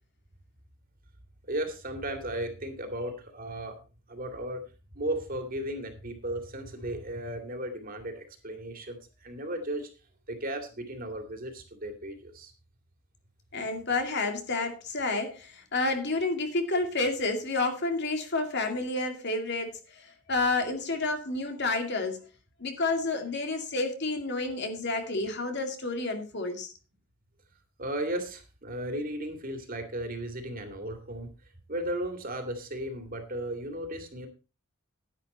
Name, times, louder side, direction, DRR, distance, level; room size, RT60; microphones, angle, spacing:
voice 1, 1.5-3.8 4.1-4.6 4.9-9.9 10.3-12.5 27.8-31.3 31.7-34.3, right 1 dB, 40° right, 5 dB, 2.5 m, -35 dB
voice 2, 13.5-22.3 22.6-26.7, left 3 dB, 55° left, 5 dB, 2.4 m, -30 dB
10.5 x 10.5 x 4.2 m, 0.32 s
head